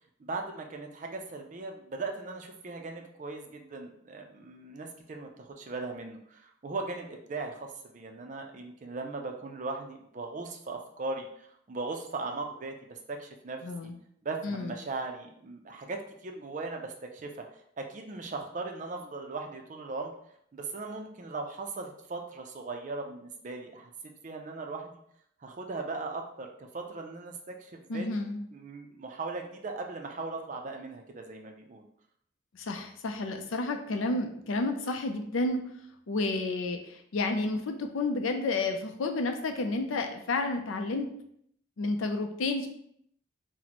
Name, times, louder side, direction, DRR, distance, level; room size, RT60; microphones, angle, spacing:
voice 1, 0.2-13.9 14.2-17.5 17.8-20.1 20.5-25.0 25.4-28.1 28.5-31.8, right 3 dB, 40° right, 3 dB, 0.4 m, -38 dB
voice 2, 13.6-14.0 14.4-14.7 27.9-28.4 32.5-35.6 36.1-41.1 41.8-42.7, left 2 dB, 85° left, 5 dB, 0.5 m, -31 dB
2.9 x 2.1 x 4.0 m, 0.69 s
head